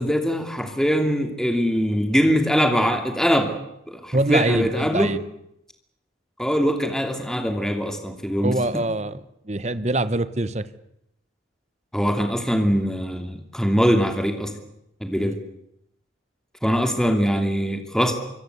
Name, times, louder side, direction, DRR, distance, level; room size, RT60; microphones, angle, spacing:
voice 1, 0.0-3.5 3.9-5.1 6.4-8.8 11.9-14.5 15.0-15.4 16.6-18.1, equal, 5° left, 2.7 m, -22 dB
voice 2, 4.1-5.2 8.4-10.7 15.1-15.4, right 2 dB, 35° right, 1.2 m, -24 dB
25.5 x 24.5 x 8.3 m
head